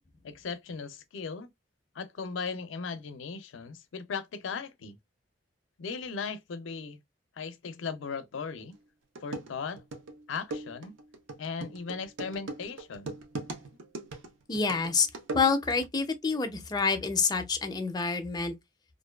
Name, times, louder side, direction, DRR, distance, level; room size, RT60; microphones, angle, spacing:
voice 1, 0.2-1.5 1.9-5.0 5.8-7.0 7.4-8.7 9.2-9.8 10.3-11.0 11.4-13.1, left 5 dB, 85° left, 0.5 m, -37 dB
sound 1, 8.7-8.8 9.2-15.9, right 2 dB, 80° right, 0.6 m, -40 dB
voice 2, 14.5-18.5, left 5 dB, 20° left, 0.4 m, -28 dB
2.5 x 2.2 x 2.2 m
head